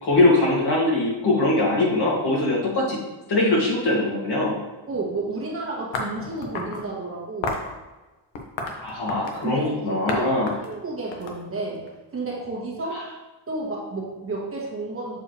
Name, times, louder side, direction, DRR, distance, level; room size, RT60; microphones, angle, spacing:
voice 1, 0.0-3.0 3.3-4.5 8.8-10.5, left 2 dB, 60° left, -4 dB, 2.1 m, -21 dB
voice 2, 4.9-7.5 9.4-10.3 10.6-11.8 12.1-13.0 13.5-15.2, right 2 dB, 30° right, -4 dB, 1.6 m, -31 dB
sound 1, 5.9-6.8 7.4-7.7 8.3-9.5 10.1-10.2 10.5-11.9, left 3 dB, 90° left, 1.1 m, -31 dB
7.3 x 4.5 x 3.2 m, 1.1 s
cardioid pair, 130°, 45 cm